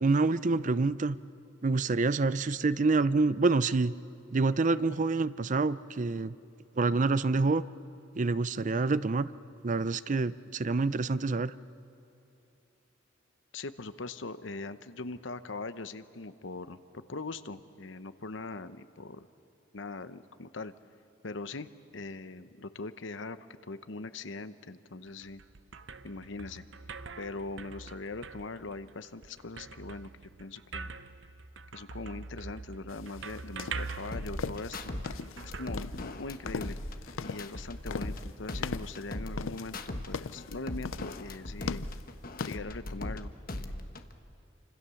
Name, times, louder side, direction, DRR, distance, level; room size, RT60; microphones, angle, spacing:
voice 1, 0.0-1.2 1.6-3.9 4.3-6.3 6.8-7.6 8.2-9.3 9.6-11.5, right 3 dB, 40° right, 16 dB, 0.5 m, -27 dB
voice 2, 13.5-19.3 19.7-20.7 21.2-23.4 23.6-25.4 26.0-26.6 27.2-30.1 30.4-30.9 31.7-34.9 35.4-36.8 37.2-41.8 42.4-43.3 43.6-43.9, left 3 dB, 65° left, 12 dB, 0.9 m, -41 dB
sound 1, 25.1-36.6, right 4 dB, 65° right, 0.8 m, -44 dB
sound 2, 32.9-42.6, left 5 dB, 80° left, 0.5 m, -39 dB
sound 3, 34.1-35.1 35.4-38.2 38.5-40.1 40.4-43.2 43.5-44.1, left 1 dB, 45° left, 1.3 m, -39 dB
28.5 x 26.0 x 7.0 m, 2.9 s
head